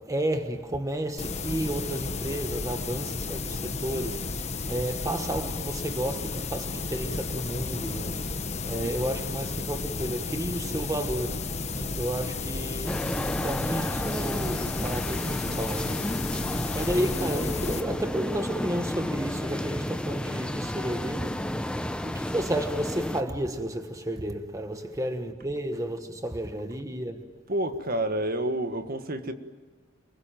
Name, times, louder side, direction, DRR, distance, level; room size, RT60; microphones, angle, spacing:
voice 1, 0.0-8.3 8.7-13.2 13.4-16.2 16.7-21.6 22.0-27.4, right 1 dB, 15° right, 1.2 m, -32 dB
sound 1, 1.2-17.8, left 3 dB, 30° left, 1.1 m, -33 dB
sound 2, 12.9-23.2, left 1 dB, 5° left, 0.8 m, -32 dB
voice 2, 27.5-29.3, right 1 dB, 45° right, 1.6 m, -29 dB
28.0 x 21.5 x 9.1 m
head